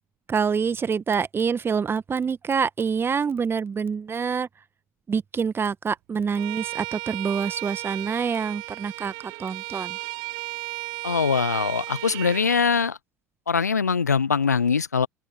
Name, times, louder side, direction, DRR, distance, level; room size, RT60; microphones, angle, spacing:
voice 1, 0.3-4.5 5.1-10.0, right 6 dB, 25° right, 1.3 m, -26 dB
Bowed string instrument, 6.3-12.6, right 26 dB, 55° right, 0.5 m, -34 dB
voice 2, 11.0-13.0 13.5-15.1, left 5 dB, 90° left, 0.7 m, -22 dB
open air
figure-of-eight pair, 70°, 9 cm